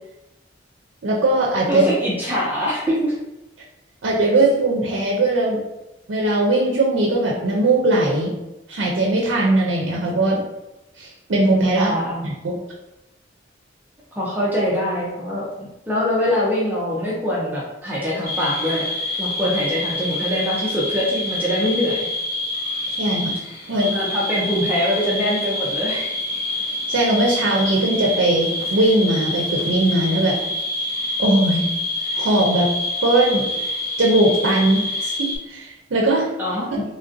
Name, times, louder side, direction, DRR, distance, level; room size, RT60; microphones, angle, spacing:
voice 1, 1.0-1.9 4.0-5.6 6.1-8.4 8.7-10.4 11.0-11.9 12.2-12.6 23.0-23.4 23.7-24.0 26.9-30.4 31.2-31.7 32.2-32.7 33.0-33.5 34.0-36.3, right 2 dB, 75° right, -2 dB, 0.5 m, -19 dB
voice 2, 1.6-3.2 11.8-12.2 14.2-18.9 19.2-22.1 23.8-26.1 36.4-36.9, equal, 10° right, -6 dB, 0.5 m, -23 dB
sound 1, 18.3-35.4, left 1 dB, 50° left, 1.1 m, -26 dB
3.2 x 2.5 x 2.5 m, 0.97 s
head